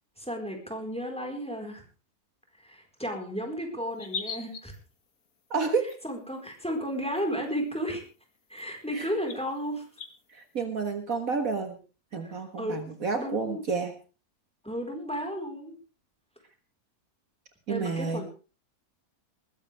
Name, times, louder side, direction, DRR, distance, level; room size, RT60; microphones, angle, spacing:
voice 1, 0.2-1.8 2.6-4.7 6.0-8.0 8.5-9.8 12.2-13.6 14.6-15.8 17.7-18.2, equal, 5° left, 2 dB, 4.4 m, -33 dB
sound 1, 4.0-4.8 5.9-6.0 7.2-7.3 7.5-7.6 8.6-8.7 9.3-9.4 10.0-10.1, left 5 dB, 65° left, 2.1 m, -37 dB
voice 2, 5.5-5.9 8.9-9.1 10.3-11.8 12.1-13.9 17.7-18.2, right 4 dB, 60° right, 7 dB, 2.0 m, -30 dB
20.5 x 15.0 x 3.5 m, 0.35 s
omnidirectional pair, 1.7 m